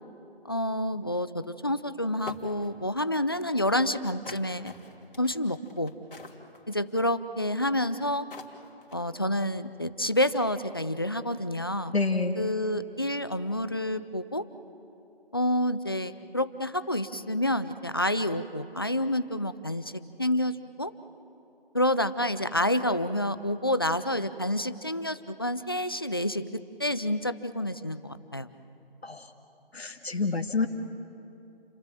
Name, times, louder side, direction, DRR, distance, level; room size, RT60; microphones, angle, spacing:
voice 1, 0.4-4.7 5.2-5.9 6.7-8.3 8.9-11.9 12.4-14.4 15.3-20.9 21.7-28.5, left 1 dB, 25° left, 13 dB, 0.5 m, -28 dB
sound 1, 1.7-1.8 2.3-2.7 4.3-6.9 7.9-8.0 8.3-9.1, left 3 dB, 60° left, 3.2 m, -44 dB
voice 2, 11.9-12.4 29.0-29.3 29.7-30.7, left 3 dB, 85° left, 3 dB, 2.0 m, -27 dB
30.0 x 23.0 x 7.6 m, 2.8 s
figure-of-eight pair, 160°, 31 cm